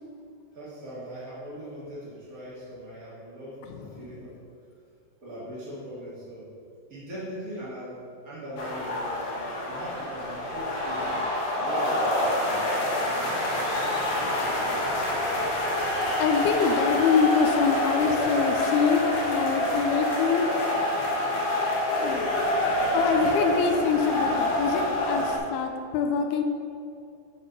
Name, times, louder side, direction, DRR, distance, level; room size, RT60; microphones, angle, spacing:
voice 1, 0.5-4.4 5.2-6.5 6.9-9.2 9.7-12.6, equal, 70° right, -9 dB, 0.8 m, -40 dB
sound 1, 8.6-25.4, left 1 dB, 65° left, 2.6 m, -26 dB
voice 2, 16.2-20.5 22.0-22.3 22.9-26.4, left 6 dB, 90° left, 4 dB, 2.2 m, -25 dB
10.0 x 4.4 x 5.4 m, 2.4 s
omnidirectional pair, 5.2 m